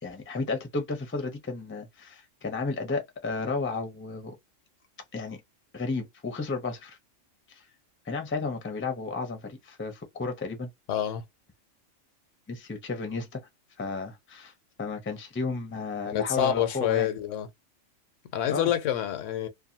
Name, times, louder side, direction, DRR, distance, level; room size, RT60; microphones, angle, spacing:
voice 1, 0.0-4.3 5.1-5.4 5.7-7.0 7.5-7.6 8.0-10.7 12.5-13.4 13.8-14.5 14.8-17.1 18.5-18.7, left 3 dB, 15° left, 0.4 m, -33 dB
voice 2, 10.9-11.2 16.1-17.5 18.3-19.5, left 10 dB, 85° left, 1.0 m, -27 dB
2.6 x 2.2 x 2.7 m
omnidirectional pair, 1.3 m